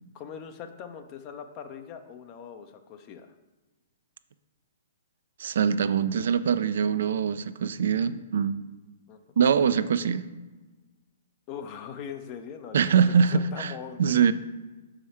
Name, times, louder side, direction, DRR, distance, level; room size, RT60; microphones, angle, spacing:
voice 1, 0.1-3.3 9.1-9.4 11.5-14.3, left 7 dB, 35° left, 7 dB, 0.6 m, -41 dB
voice 2, 5.4-8.6 9.4-10.3 12.7-13.7 14.0-14.3, right 7 dB, 65° right, 13 dB, 0.3 m, -23 dB
6.2 x 4.9 x 4.3 m, 1.2 s
figure-of-eight pair, 120°, 0 cm